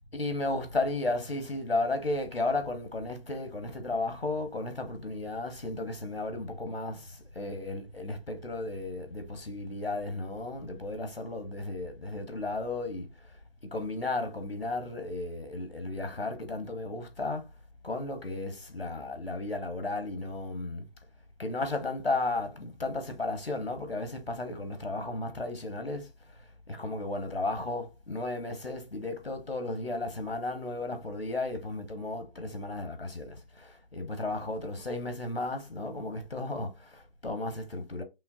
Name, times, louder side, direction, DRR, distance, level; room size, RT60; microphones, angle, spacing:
voice 1, 0.1-17.5 17.8-20.9 21.4-38.0, left 2 dB, 90° left, 1.4 m, -34 dB
5.5 x 2.1 x 2.8 m
figure-of-eight pair, 170°, 29 cm